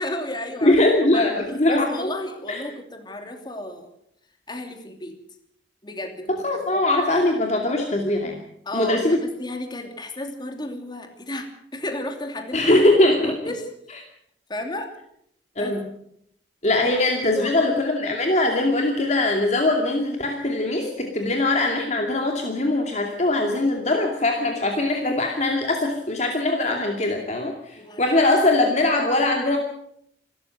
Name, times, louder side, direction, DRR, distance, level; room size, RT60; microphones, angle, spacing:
voice 1, 0.0-0.8 1.1-1.3 1.7-3.9 4.5-5.2 5.8-6.9 8.6-12.8 13.2-13.7 14.5-14.9 15.6-15.8 17.3-17.8 27.7-28.1, left 1 dB, 25° left, 5 dB, 2.8 m, -33 dB
voice 2, 0.6-2.1 2.5-2.6 6.3-8.4 8.7-9.2 12.5-13.3 15.6-15.8 16.6-29.6, left 2 dB, 40° left, 2 dB, 2.5 m, -21 dB
27.0 x 13.5 x 7.8 m, 0.73 s
head